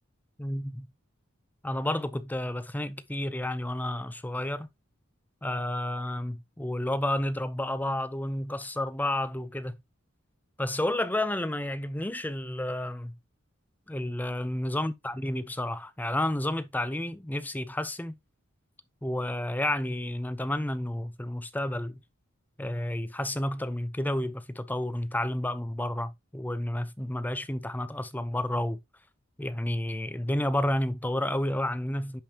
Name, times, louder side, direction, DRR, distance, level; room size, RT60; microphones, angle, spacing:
voice 1, 0.4-0.9 1.6-4.7 5.4-9.8 10.6-13.1 13.9-18.2 19.0-22.0 22.6-28.8 29.4-32.2, left 1 dB, 10° left, 0.6 m, -31 dB
10.0 x 5.3 x 2.9 m
head